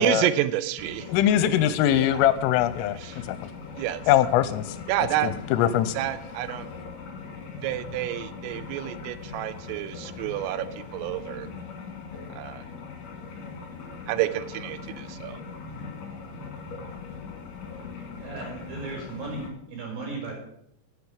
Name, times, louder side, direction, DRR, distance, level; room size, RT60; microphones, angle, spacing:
voice 1, 0.0-1.1 2.0-2.1 2.9-3.2 3.8-4.0 4.9-5.3 6.0-6.7 7.6-10.7 10.9-11.5 12.4-12.6 14.1-15.4, right 14 dB, 90° right, 13 dB, 3.3 m, -29 dB
sound 1, 0.8-19.5, left 5 dB, 50° left, 3.5 m, -40 dB
voice 2, 1.1-3.0 3.3-3.4 4.1-4.6 5.2-5.9, left 11 dB, 85° left, 13 dB, 3.1 m, -22 dB
voice 3, 18.2-20.4, right 3 dB, 45° right, 0 dB, 5.3 m, -36 dB
10.5 x 7.9 x 7.1 m, 0.74 s
omnidirectional pair, 5.8 m